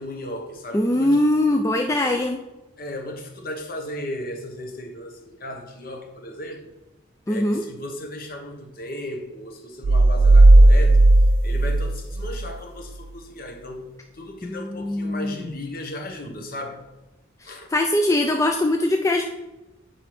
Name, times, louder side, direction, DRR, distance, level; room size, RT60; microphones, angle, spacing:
voice 1, 0.0-1.2 2.8-6.7 7.3-11.0 11.4-13.9 14.1-16.8 17.4-17.7, left 1 dB, 50° left, 3 dB, 1.1 m, -35 dB
voice 2, 0.7-2.4 7.3-7.6 14.4-15.5 17.4-19.3, left 1 dB, 15° left, 3 dB, 0.3 m, -22 dB
sound 1, 9.8-12.6, right 2 dB, 70° right, 0.4 m, -14 dB
8.0 x 4.5 x 4.8 m, 1.0 s
head